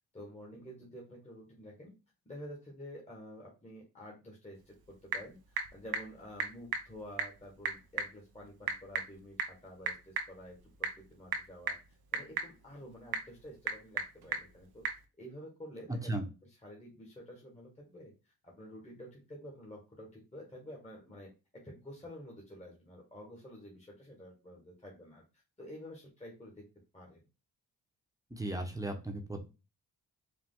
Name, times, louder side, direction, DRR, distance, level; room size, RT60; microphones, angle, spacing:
voice 1, 0.1-1.9 2.3-11.8 12.1-16.1 16.6-25.2 25.6-26.6 26.9-27.2, equal, 20° left, -2 dB, 1.7 m, -50 dB
Typing / Telephone, 4.5-15.1, right 6 dB, 80° right, 0.9 m, -39 dB
voice 2, 28.3-29.4, right 2 dB, 10° right, 4 dB, 1.2 m, -36 dB
5.0 x 2.4 x 3.8 m, 0.29 s
cardioid pair, 70°, 36 cm